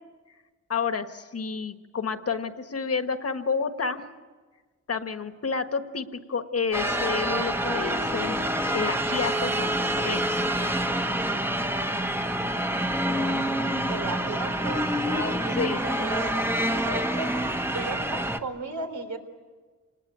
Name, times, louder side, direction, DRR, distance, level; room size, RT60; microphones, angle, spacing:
voice 1, 0.7-4.0 4.9-8.4 8.7-10.3 15.5-15.8, left 5 dB, 55° left, 8 dB, 1.5 m, -30 dB
sound 1, 6.7-18.4, right 1 dB, 10° right, 1.4 m, -27 dB
voice 2, 13.9-17.3 17.7-19.2, right 2 dB, 75° right, 6 dB, 3.4 m, -35 dB
27.5 x 20.0 x 9.0 m, 1.4 s
wide cardioid pair, 100°, 30 cm